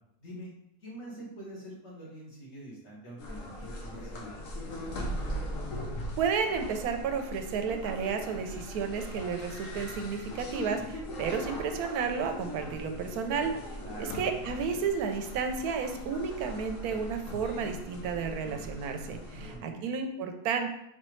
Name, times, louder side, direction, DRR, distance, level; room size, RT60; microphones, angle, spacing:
voice 1, 0.2-0.5 0.8-4.8 13.8-14.2 19.3-19.8, right 1 dB, 45° left, -6 dB, 1.9 m, -45 dB
sound 1, 3.2-19.6, left 1 dB, 60° left, 1.1 m, -40 dB
voice 2, 6.2-20.7, right 6 dB, 75° right, 6 dB, 1.0 m, -32 dB
4.3 x 4.0 x 3.1 m, 0.79 s
omnidirectional pair, 1.7 m